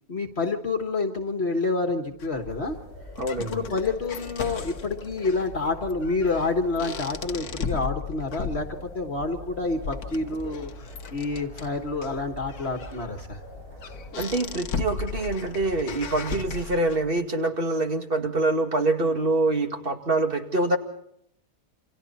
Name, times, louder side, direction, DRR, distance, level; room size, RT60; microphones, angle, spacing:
voice 1, 0.1-2.8 3.4-10.7 11.1-13.4, left 3 dB, 45° left, 6 dB, 1.8 m, -28 dB
sound 1, 2.2-17.2, left 6 dB, 85° left, 1.7 m, -37 dB
sound 2, 2.4-16.7, left 1 dB, 85° right, 8.7 m, -44 dB
voice 2, 3.2-3.6 14.2-20.8, right 2 dB, 40° right, 6 dB, 2.3 m, -25 dB
29.0 x 25.5 x 4.2 m, 0.70 s
omnidirectional pair, 1.5 m